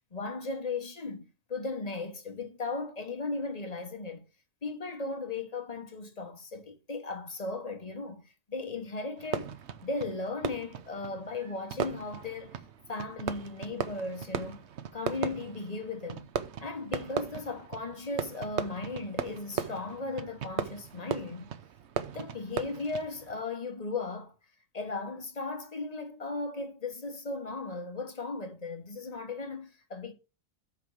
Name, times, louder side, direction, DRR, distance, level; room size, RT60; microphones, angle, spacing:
voice 1, 0.1-4.2 4.6-9.6 9.8-12.6 12.9-14.7 14.9-16.3 16.6-21.5 22.1-24.3 24.7-30.1, left 3 dB, 30° left, 1.2 m, -36 dB
Fireworks, 9.2-23.4, right 8 dB, 60° right, 0.9 m, -38 dB
8.4 x 5.4 x 4.7 m
omnidirectional pair, 1.4 m